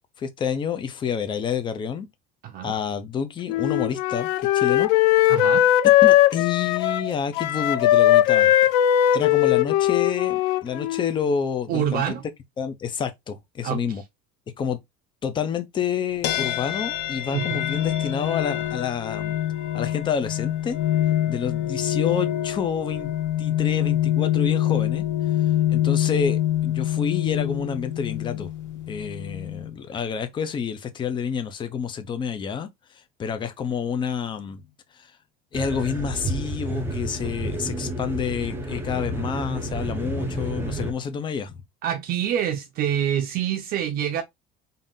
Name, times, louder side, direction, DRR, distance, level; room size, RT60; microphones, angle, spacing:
voice 1, 0.2-2.1 2.6-4.9 6.0-8.7 9.1-12.1 12.6-14.0 14.6-14.8 15.2-19.3 19.7-20.8 21.3-23.1 23.4-25.0 25.7-28.5 28.9-32.7 33.2-34.7 35.0-35.1 35.5-41.6, left 7 dB, 20° left, 0.6 m, -28 dB
voice 2, 2.4-2.7 5.3-5.7 11.7-12.2 13.6-14.0 17.3-17.6 41.8-44.2, right 10 dB, 45° right, 0.6 m, -26 dB
Wind instrument woodwind instrument, 3.5-11.2, left 13 dB, 90° left, 0.5 m, -19 dB
sound 1, 16.2-29.8, left 12 dB, 70° left, 0.9 m, -25 dB
sound 2, 35.5-40.9, right 1 dB, 10° right, 0.7 m, -30 dB
3.8 x 2.7 x 3.6 m
cardioid pair, 160°, 21 cm